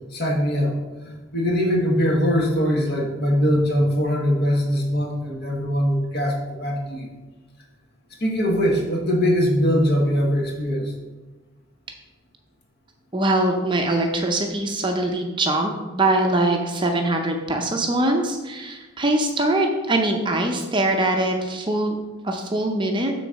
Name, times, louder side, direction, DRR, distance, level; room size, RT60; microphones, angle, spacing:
voice 1, 0.1-7.1 8.2-10.9, equal, 50° left, 0 dB, 1.3 m, -22 dB
voice 2, 13.1-22.0 22.2-23.1, right 2 dB, 20° right, 3 dB, 0.6 m, -22 dB
6.4 x 3.9 x 6.3 m, 1.2 s
head